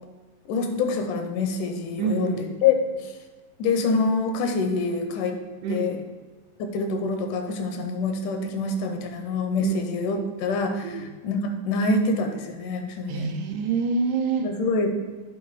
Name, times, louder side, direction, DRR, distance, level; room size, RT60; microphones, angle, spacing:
voice 1, 0.5-3.1 3.6-5.4 5.7-6.0 6.7-13.3 14.4-14.9, left 3 dB, 80° left, 5 dB, 2.2 m, -26 dB
voice 2, 2.0-2.5 5.6-5.9 9.6-9.8 10.8-11.1 13.1-14.5, right 5 dB, 80° right, 3 dB, 2.0 m, -26 dB
8.7 x 3.6 x 4.7 m, 1.3 s
omnidirectional pair, 3.7 m